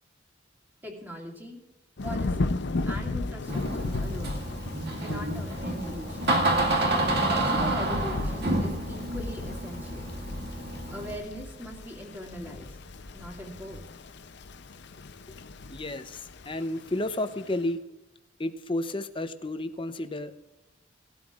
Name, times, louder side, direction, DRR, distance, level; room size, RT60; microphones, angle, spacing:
voice 1, 0.8-1.6 2.0-4.4 5.0-6.4 7.3-10.1 10.9-12.8 13.1-13.8, equal, 10° right, -1 dB, 2.4 m, -41 dB
Thunder / Rain, 2.0-17.6, left 2 dB, 55° left, 0.6 m, -36 dB
Door, 3.5-11.1, right 2 dB, 55° right, 2.0 m, -29 dB
voice 2, 15.7-16.2 16.5-17.8 18.4-20.4, left 1 dB, 25° left, 9 dB, 0.7 m, -31 dB
18.0 x 12.5 x 2.5 m, 0.94 s
head